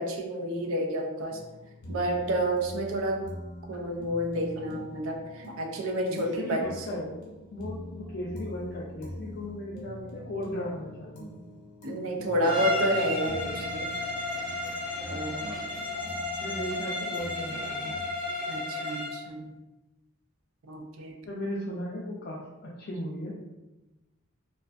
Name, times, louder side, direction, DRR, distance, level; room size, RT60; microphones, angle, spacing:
voice 1, 0.0-1.4 1.9-3.2 3.7-6.9 11.8-13.9 15.1-15.4 18.5-19.5 20.7-21.1, equal, 70° right, 2 dB, 0.4 m, -30 dB
sound 1, 1.3-18.1, equal, 90° left, 0.6 m, -44 dB
voice 2, 6.1-7.2 7.5-11.4 15.4-15.5 16.4-17.9 21.2-23.3, left 1 dB, 50° left, -5 dB, 0.4 m, -36 dB
Bowed string instrument, 12.4-19.2, left 1 dB, 25° right, 0.9 m, -33 dB
2.3 x 2.2 x 2.4 m, 1.0 s
head